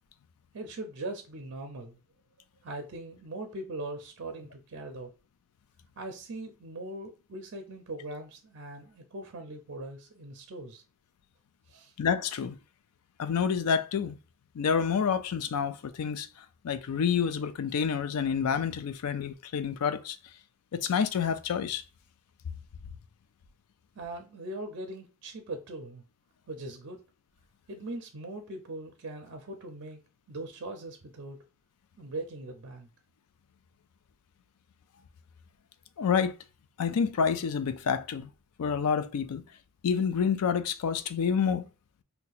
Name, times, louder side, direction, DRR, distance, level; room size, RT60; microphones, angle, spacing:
voice 1, 0.5-2.0 2.6-5.1 6.0-10.8 11.7-11.9 24.0-26.0 26.5-27.0 27.7-30.0 30.3-31.4 32.0-32.9, right 2 dB, 55° right, 0.5 m, -40 dB
voice 2, 12.0-12.6 13.2-14.2 14.5-16.3 16.6-20.2 20.7-21.8 36.0-36.4 36.8-38.3 38.6-39.4 39.8-41.7, left 6 dB, 85° left, 0.4 m, -28 dB
2.8 x 2.2 x 3.9 m
head